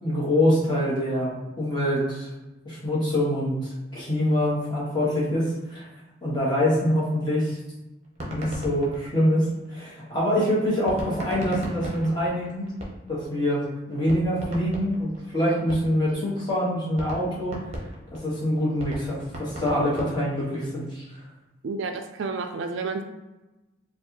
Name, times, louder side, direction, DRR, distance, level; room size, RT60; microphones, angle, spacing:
voice 1, 0.0-2.3 2.6-5.9 6.2-7.6 8.3-12.7 13.1-17.6 18.2-21.0, equal, 20° left, -7 dB, 1.4 m, -25 dB
sound 1, 8.0-9.9 10.9-13.3 13.6-13.7 14.0-16.1 16.5-16.6 16.9-20.6, equal, 35° right, 0.8 m, -36 dB
voice 2, 21.6-23.0, right 4 dB, 70° right, 6 dB, 0.4 m, -30 dB
4.5 x 2.4 x 2.9 m, 1.1 s
head